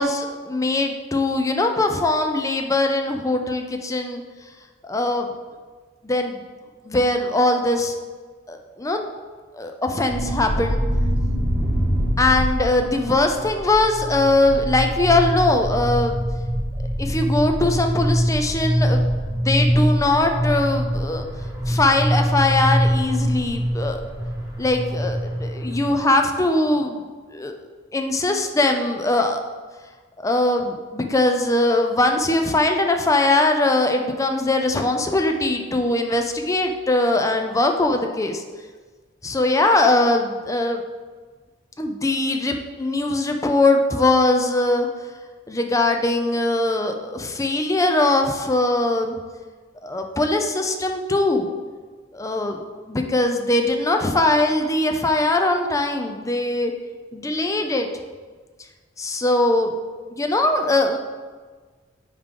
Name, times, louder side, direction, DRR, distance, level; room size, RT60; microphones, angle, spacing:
voice 1, 0.0-4.2 4.8-5.3 6.0-6.4 6.9-8.0 8.5-9.0 9.6-10.8 12.2-16.2 17.0-19.0 19.3-21.2 21.7-24.0 24.6-27.0 27.3-27.5 27.9-29.4 30.2-38.4 39.2-40.8 41.8-44.9 45.5-49.2 49.8-51.5 52.1-52.6 52.9-56.7 57.1-57.9 59.0-59.7 60.1-61.0, left 2 dB, 15° left, 4 dB, 0.5 m, -21 dB
sound 1, 10.1-25.9, equal, 15° right, 0.9 m, -24 dB
9.5 x 3.7 x 3.7 m, 1.4 s
head